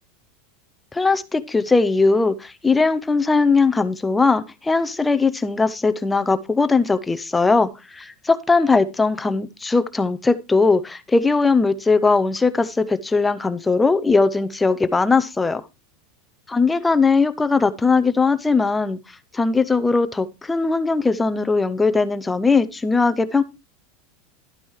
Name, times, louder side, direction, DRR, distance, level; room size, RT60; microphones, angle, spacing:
voice 1, 0.9-15.6 16.5-19.0 19.3-23.4, left 4 dB, 5° left, 0.5 m, -19 dB
12.0 x 9.1 x 3.1 m
supercardioid pair, 180°, 0 cm